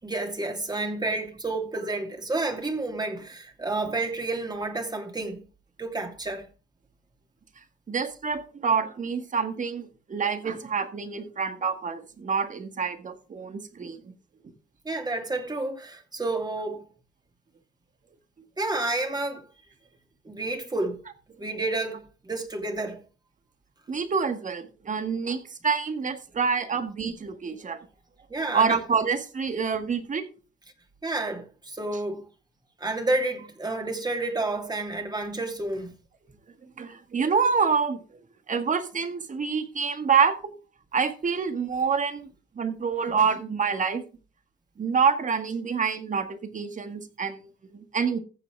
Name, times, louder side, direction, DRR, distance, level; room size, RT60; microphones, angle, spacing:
voice 1, 0.0-5.4 5.8-6.5 14.8-16.8 18.6-19.4 20.2-21.0 21.4-23.0 28.3-28.8 31.0-32.3 32.8-35.9, right 2 dB, 20° right, 2.7 m, -30 dB
voice 2, 7.9-14.1 23.9-27.9 28.5-30.3 36.8-38.2 38.5-40.5 40.9-42.3 42.6-44.0 44.8-48.2, right 6 dB, 40° right, 1.9 m, -27 dB
15.0 x 7.1 x 3.5 m
cardioid pair, 90°, 20 cm